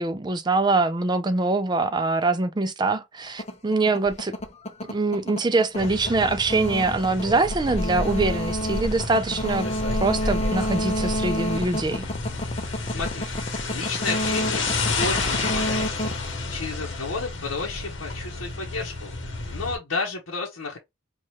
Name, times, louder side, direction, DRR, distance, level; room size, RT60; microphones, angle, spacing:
voice 1, 0.0-4.4 4.8-9.7 10.0-12.0, right 3 dB, 20° right, 0.4 m, -24 dB
sound 1, 3.3-17.1, equal, 30° left, 0.6 m, -30 dB
sound 2, 5.8-19.8, left 3 dB, 65° left, 1.0 m, -30 dB
voice 2, 12.8-13.3 13.7-15.9 16.5-19.1 19.5-20.8, left 3 dB, 90° left, 0.9 m, -32 dB
4.6 x 2.4 x 2.9 m
head